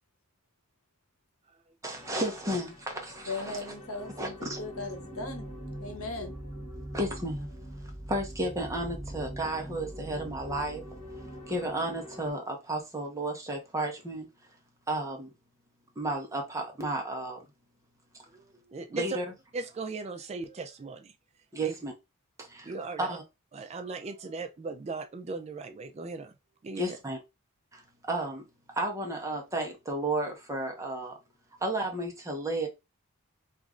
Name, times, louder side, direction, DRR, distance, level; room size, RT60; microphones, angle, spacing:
voice 1, 1.8-3.8 4.2-4.6 6.9-7.5 8.1-10.8 11.5-14.3 14.9-15.3 16.0-17.4 18.9-19.2 21.5-21.9 22.4-22.7 23.0-23.2 26.8-27.2 27.7-27.8 28.1-31.2 31.6-32.7, right 1 dB, 15° right, 0.8 m, -33 dB
sound 1, 1.9-12.3, equal, 25° left, 1.2 m, -43 dB
voice 2, 3.3-5.5 5.8-6.4, left 3 dB, 75° left, 0.9 m, -38 dB
voice 3, 18.3-19.2 19.5-21.1 21.6-21.7 22.6-23.2 23.5-26.3 26.6-27.0, right 3 dB, 30° right, 0.3 m, -38 dB
3.0 x 2.5 x 3.6 m
head